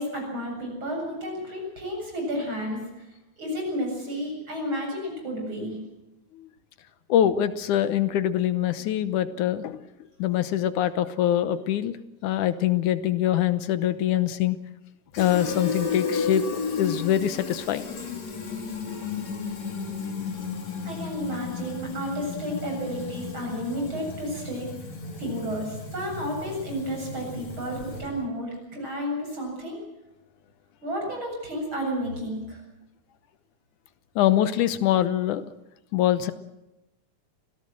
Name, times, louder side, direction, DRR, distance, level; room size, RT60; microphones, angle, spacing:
voice 1, 0.0-3.1 3.4-5.8 20.8-24.7 25.2-29.8 30.8-32.6, equal, 40° right, 0 dB, 8.5 m, -32 dB
voice 2, 7.1-9.8 10.2-12.0 12.2-14.6 15.2-16.4 16.8-17.9 34.2-35.4 35.9-36.3, left 11 dB, 80° left, 13 dB, 2.5 m, -24 dB
Fill (with liquid), 15.1-28.2, left 4 dB, 60° left, 4.4 m, -34 dB
25.5 x 17.5 x 7.7 m, 0.97 s
omnidirectional pair, 3.5 m